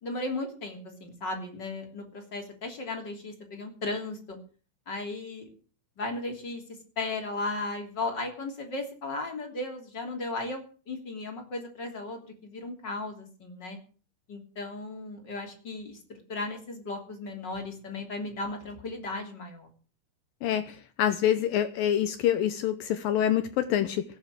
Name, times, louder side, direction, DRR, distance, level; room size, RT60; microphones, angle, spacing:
voice 1, 0.0-4.4 4.9-5.5 6.0-6.6 7.0-13.8 14.3-16.0 16.3-19.7, left 2 dB, 25° left, 2 dB, 3.1 m, -36 dB
voice 2, 20.4-24.0, left 10 dB, 80° left, 10 dB, 2.0 m, -26 dB
18.0 x 9.1 x 6.6 m, 0.39 s
omnidirectional pair, 5.2 m